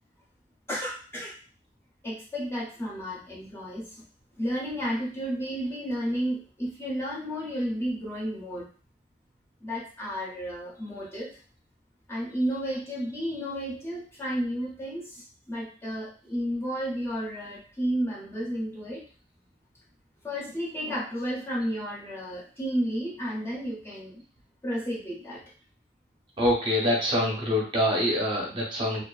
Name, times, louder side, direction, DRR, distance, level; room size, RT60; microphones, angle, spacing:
voice 1, 0.7-1.3 2.0-3.9 4.4-8.7 9.6-11.3 12.1-19.0 20.2-24.2 24.6-25.4, equal, 15° left, -4 dB, 0.6 m, -32 dB
voice 2, 26.4-29.0, left 1 dB, 30° right, -2 dB, 0.6 m, -25 dB
2.4 x 2.3 x 2.3 m, 0.39 s
head